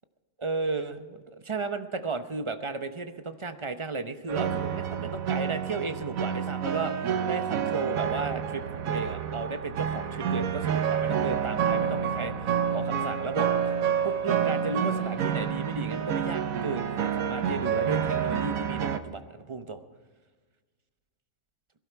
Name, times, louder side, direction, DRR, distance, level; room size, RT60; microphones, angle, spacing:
voice 1, 0.4-13.5 14.0-19.8, right 3 dB, 35° right, 8 dB, 0.5 m, -34 dB
sound 1, 4.3-19.0, right 8 dB, 65° right, 1.3 m, -28 dB
22.0 x 12.0 x 4.6 m, 1.4 s
omnidirectional pair, 1.6 m